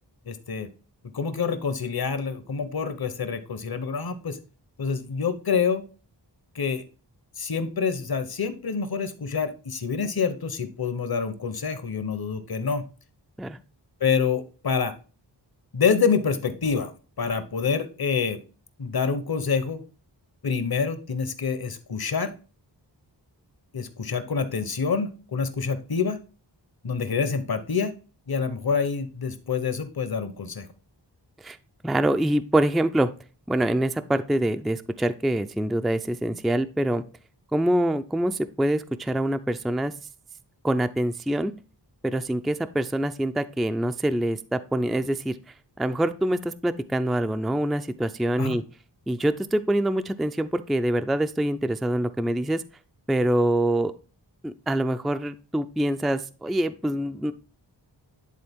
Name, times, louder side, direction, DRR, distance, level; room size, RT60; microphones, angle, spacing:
voice 1, 0.3-0.7 1.1-4.4 4.8-5.8 6.5-6.8 7.4-12.8 14.0-14.9 15.7-16.9 17.2-18.4 18.8-19.8 20.4-22.3 23.7-26.2 26.8-27.9 28.3-30.7 48.4-48.6, left 5 dB, 55° left, 11 dB, 1.0 m, -27 dB
voice 2, 31.8-33.1 33.5-37.0 37.5-39.9 40.6-41.5 42.0-45.3 45.8-48.6 49.1-52.6 53.1-53.9 54.4-57.3, right 1 dB, ahead, 9 dB, 0.4 m, -25 dB
10.5 x 3.8 x 3.6 m, 0.35 s
wide cardioid pair, 70°, 43 cm